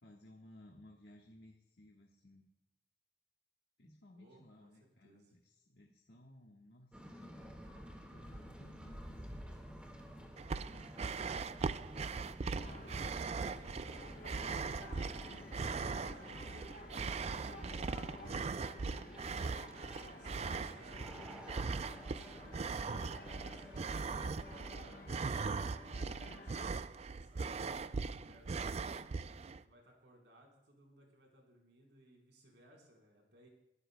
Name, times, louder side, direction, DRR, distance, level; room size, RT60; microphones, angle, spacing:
voice 1, 0.0-2.4 3.8-9.5 10.7-12.7 28.0-28.4, left 1 dB, 65° left, 0 dB, 1.4 m, -60 dB
voice 2, 4.2-5.3 13.8-18.7 20.0-23.8 24.5-29.1 29.6-33.5, equal, 75° right, 0 dB, 4.2 m, -63 dB
sound 1, 6.9-24.8, equal, 5° right, 1.8 m, -53 dB
sound 2, 10.4-29.6, right 4 dB, 35° right, 0.4 m, -40 dB
sound 3, 12.6-26.7, left 2 dB, 50° left, 1.2 m, -53 dB
29.5 x 12.5 x 2.2 m, 0.87 s
head